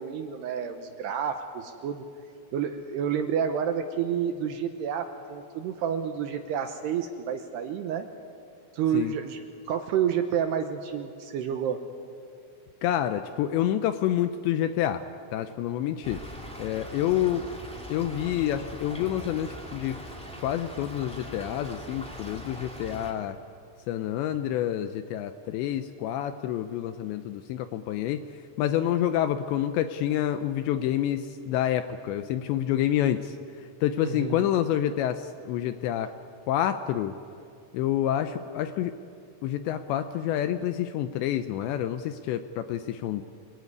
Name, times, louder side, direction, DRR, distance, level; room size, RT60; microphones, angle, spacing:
voice 1, 0.0-2.1 2.5-8.1 8.7-9.4 9.7-11.8 34.0-34.4, right 8 dB, 75° right, 7 dB, 2.6 m, -29 dB
voice 2, 12.8-15.0 15.3-16.2 16.6-17.5 17.9-20.0 20.4-23.4 23.9-28.2 28.6-33.4 33.8-36.1 36.5-37.1 37.7-38.9 39.4-43.2, left 11 dB, 80° left, 9 dB, 2.6 m, -28 dB
Stream / Trickle dribble, 16.0-23.1, equal, ahead, 1.3 m, -41 dB
27.5 x 19.5 x 9.6 m, 2.5 s
omnidirectional pair, 5.7 m